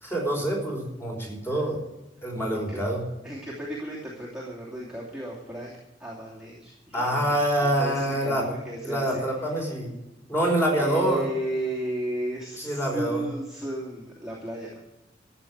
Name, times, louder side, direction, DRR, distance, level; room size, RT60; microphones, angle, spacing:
voice 1, 0.0-1.8 2.2-3.0 6.9-8.5 8.8-9.9 10.3-11.2 12.6-13.2, right 1 dB, 15° left, -1 dB, 4.7 m, -26 dB
voice 2, 3.2-5.7 6.0-7.3 7.6-9.7 10.8-14.7, right 1 dB, 5° right, -7 dB, 2.7 m, -34 dB
13.5 x 8.1 x 7.9 m, 1.0 s
head